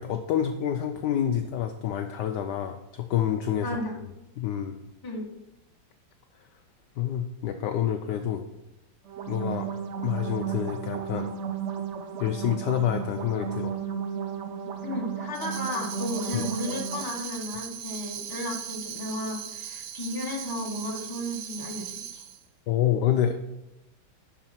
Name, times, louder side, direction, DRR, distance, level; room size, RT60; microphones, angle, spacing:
voice 1, 0.0-3.7 4.4-4.8 7.0-8.5 9.3-9.7 10.0-11.3 12.2-13.7 16.3-16.5 22.7-23.3, left 10 dB, 75° left, 7 dB, 1.0 m, -27 dB
voice 2, 3.6-4.0 5.0-5.2 14.8-22.2, left 1 dB, 10° left, -1 dB, 1.3 m, -34 dB
sound 1, 9.0-17.0, right 7 dB, 90° right, 0.6 m, -34 dB
Tambourine, 15.3-22.4, right 9 dB, 70° right, 0.9 m, -39 dB
11.5 x 4.8 x 4.4 m, 0.91 s
omnidirectional pair, 2.2 m